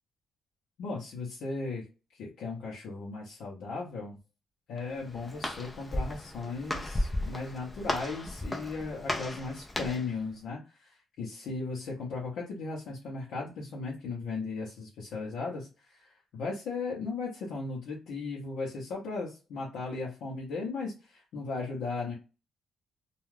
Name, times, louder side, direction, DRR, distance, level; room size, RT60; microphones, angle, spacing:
voice 1, 0.8-1.8 2.1-4.2 4.7-22.1, left 3 dB, 85° left, -4 dB, 0.7 m, -37 dB
Walk footsteps, 4.8-10.1, left 1 dB, 15° left, 0.4 m, -35 dB
2.3 x 2.3 x 3.1 m, 0.32 s
cardioid pair, 155°, 0 cm